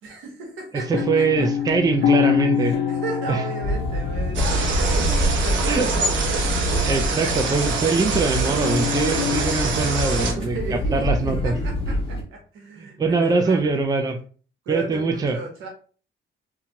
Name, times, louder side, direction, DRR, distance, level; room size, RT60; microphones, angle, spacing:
voice 1, 0.0-0.9 1.2-1.3 2.5-7.1 7.4-7.7 9.3-9.8 10.4-13.6 14.6-15.7, right 3 dB, 90° right, 1 dB, 1.0 m, -35 dB
voice 2, 0.7-2.8 3.3-3.4 5.7-5.9 6.9-11.5 12.8-14.2 14.7-15.4, right 4 dB, 20° right, 5 dB, 0.4 m, -23 dB
sound 1, 0.9-5.0 5.2-7.5 8.6-9.4, left 8 dB, 70° left, 0.5 m, -26 dB
sound 2, 3.6-12.2, left 1 dB, 30° left, 1.2 m, -27 dB
sound 3, 4.3-10.3, right 3 dB, 70° right, 0.7 m, -24 dB
2.8 x 2.3 x 2.8 m, 0.40 s
cardioid pair, 90°, 20 cm